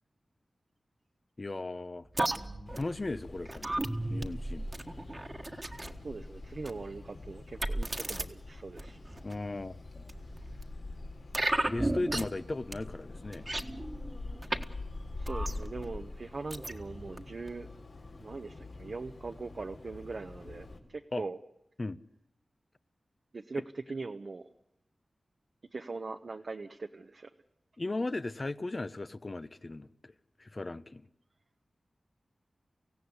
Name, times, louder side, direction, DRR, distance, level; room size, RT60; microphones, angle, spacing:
voice 1, 1.4-2.1 2.7-3.7 4.1-4.7 9.2-10.1 11.7-13.5 21.1-21.2 21.8-22.0 27.8-30.1 30.4-31.1, left 2 dB, 35° left, 1.0 m, -36 dB
sound 1, 2.1-6.0 6.6-6.9 7.6-8.2 8.8-9.3 10.1-10.6 11.3-12.4 12.7-12.8 13.1-14.6 14.9-15.9 16.5-17.2 17.5-17.6, right 1 dB, 25° right, 1.6 m, -35 dB
sound 2, 2.7-20.8, left 2 dB, 70° left, 3.7 m, -45 dB
voice 2, 6.0-9.0 15.2-17.7 18.2-21.4 23.3-24.5 25.7-27.3, right 3 dB, 55° right, 1.0 m, -41 dB
25.0 x 16.5 x 9.8 m
wide cardioid pair, 85°, 0 cm